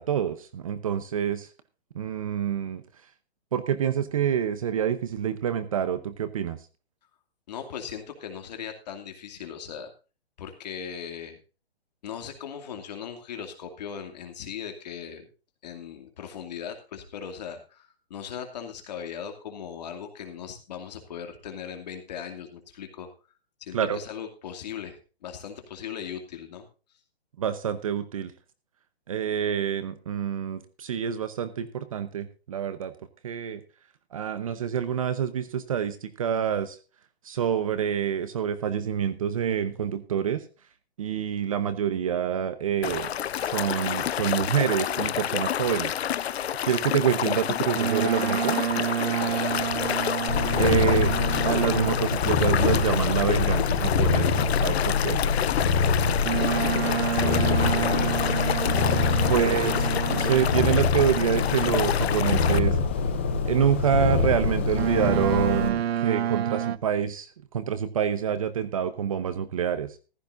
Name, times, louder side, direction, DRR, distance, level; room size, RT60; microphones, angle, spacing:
voice 1, 0.0-1.5 1.9-2.8 3.5-6.6 23.7-24.0 27.4-28.3 29.1-32.9 33.2-33.6 34.1-36.8 37.2-40.4 41.0-43.1 43.4-45.9 46.6-48.6 50.6-51.1 51.4-55.2 59.3-59.8 60.1-62.8 63.5-67.3 67.5-69.9, right 8 dB, 35° right, 12 dB, 0.8 m, -27 dB
voice 2, 7.5-9.9 10.4-11.4 12.0-15.3 15.6-23.1 23.6-26.6 49.2-49.6 56.2-57.0 57.3-59.5, left 8 dB, 40° left, 5 dB, 2.5 m, -39 dB
sound 1, 42.8-62.6, left 10 dB, 80° left, 0.6 m, -29 dB
Boat Water vehicle, 47.7-52.3 56.2-60.8 64.8-66.8, right 10 dB, 75° right, 0.7 m, -29 dB
Purr, 50.3-65.7, left 4 dB, 10° left, 0.5 m, -25 dB
15.0 x 13.0 x 2.6 m, 0.33 s
hypercardioid pair, 170°, 31 cm